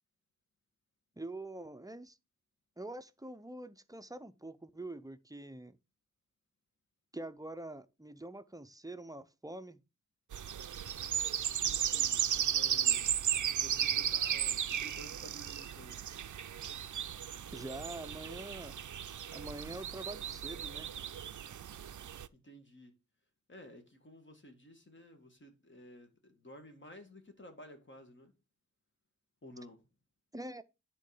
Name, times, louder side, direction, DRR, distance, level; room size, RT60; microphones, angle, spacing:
voice 1, 1.2-2.1 2.8-5.8 7.1-9.8 17.5-18.7 19.3-20.9 30.3-30.6, right 2 dB, 10° right, 0.5 m, -45 dB
sound 1, 10.3-22.3, right 9 dB, 90° right, 0.4 m, -35 dB
voice 2, 11.5-13.1 13.6-16.0 22.3-22.9 23.5-28.3 29.4-29.8, equal, 40° left, 1.8 m, -53 dB
9.9 x 3.8 x 4.8 m
wide cardioid pair, 85°, 29 cm